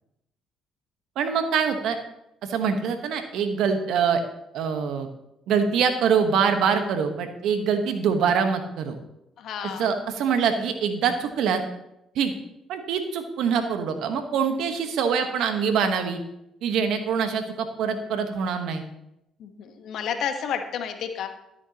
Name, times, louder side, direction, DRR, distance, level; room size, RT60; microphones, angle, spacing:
voice 1, 1.2-2.0 2.4-4.2 4.5-5.1 5.5-9.0 9.6-11.6 12.1-12.3 12.7-16.2 16.6-18.8, right 6 dB, 75° right, 7 dB, 1.3 m, -24 dB
voice 2, 9.4-9.9 19.4-21.3, left 7 dB, 70° left, 6 dB, 1.3 m, -31 dB
13.0 x 9.0 x 3.0 m, 0.84 s
supercardioid pair, 65°, 0 cm